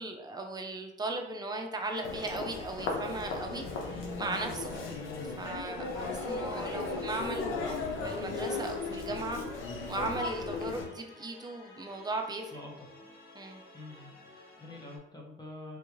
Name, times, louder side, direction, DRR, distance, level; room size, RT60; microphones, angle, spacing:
voice 1, 0.0-3.6 4.2-4.7 5.4-7.5 8.0-9.4 9.9-12.6 13.3-13.6, right 2 dB, 20° right, 3 dB, 0.6 m, -37 dB
sound 1, 1.9-15.0, left 2 dB, 55° left, 1.1 m, -54 dB
Human voice, 2.0-10.9, left 3 dB, 85° left, 0.7 m, -36 dB
voice 2, 4.7-5.1 12.5-12.9 13.7-15.8, left 2 dB, 20° left, 0 dB, 0.8 m, -47 dB
3.6 x 2.5 x 3.0 m, 0.86 s
cardioid pair, 90°, 20 cm